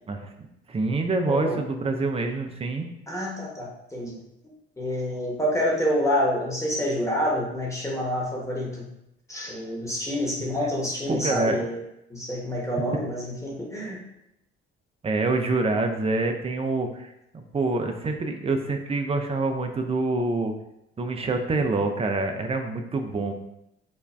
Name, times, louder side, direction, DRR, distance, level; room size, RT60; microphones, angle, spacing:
voice 1, 0.7-2.9 11.1-11.6 15.0-20.5 21.0-23.3, right 3 dB, 20° right, 5 dB, 0.4 m, -26 dB
voice 2, 1.2-1.6 3.1-4.2 4.8-8.9 9.3-11.8 12.1-14.0, equal, 10° left, -3 dB, 1.0 m, -27 dB
2.5 x 2.2 x 3.2 m, 0.83 s
hypercardioid pair, 55°, 31 cm